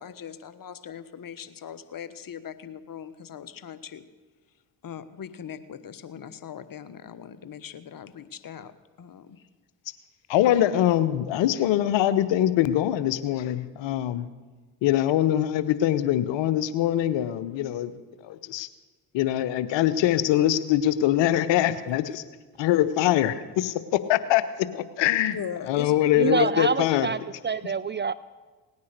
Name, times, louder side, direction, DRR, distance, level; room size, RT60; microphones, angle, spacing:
voice 1, 0.0-4.0 4.8-8.7 9.0-9.4 10.4-10.6 25.3-26.5, left 8 dB, 45° left, 13 dB, 1.2 m, -39 dB
voice 2, 10.3-14.3 14.8-17.9 18.2-18.7 19.1-22.2 22.6-25.4 25.7-27.1, left 12 dB, 65° left, 14 dB, 0.9 m, -23 dB
voice 3, 26.2-27.2 27.4-28.1, right 5 dB, 25° right, 16 dB, 0.4 m, -26 dB
18.0 x 9.6 x 6.6 m, 1.3 s
hypercardioid pair, 45°, 47 cm